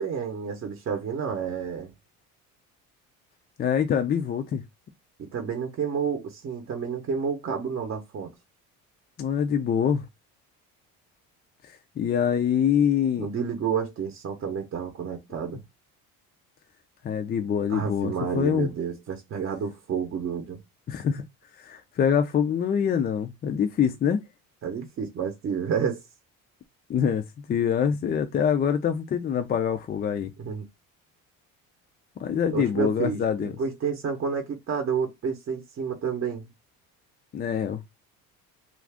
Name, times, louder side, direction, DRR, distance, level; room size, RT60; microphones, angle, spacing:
voice 1, 0.0-1.9 5.2-8.3 13.2-15.6 17.7-20.6 24.6-26.0 30.4-30.7 32.5-36.5, right 6 dB, 40° right, 0.7 m, -30 dB
voice 2, 3.6-4.6 9.2-10.0 12.0-13.3 17.0-18.7 20.9-21.2 21.6-24.2 26.9-27.2 27.5-30.3 32.2-33.5 37.3-37.8, left 8 dB, 30° left, 0.4 m, -25 dB
2.5 x 2.3 x 3.4 m
cardioid pair, 110°, 34 cm